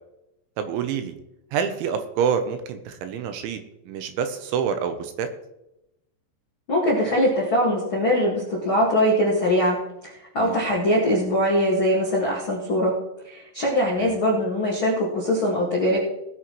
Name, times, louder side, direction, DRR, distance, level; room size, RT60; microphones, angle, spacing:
voice 1, 0.6-1.2 1.5-3.6 3.9-5.3 10.4-10.6 14.0-14.1, right 7 dB, 80° right, 8 dB, 3.1 m, -27 dB
voice 2, 6.7-9.8 10.0-12.9 13.2-16.0, equal, 55° left, -4 dB, 1.3 m, -22 dB
19.0 x 8.6 x 3.1 m, 0.89 s
omnidirectional pair, 5.7 m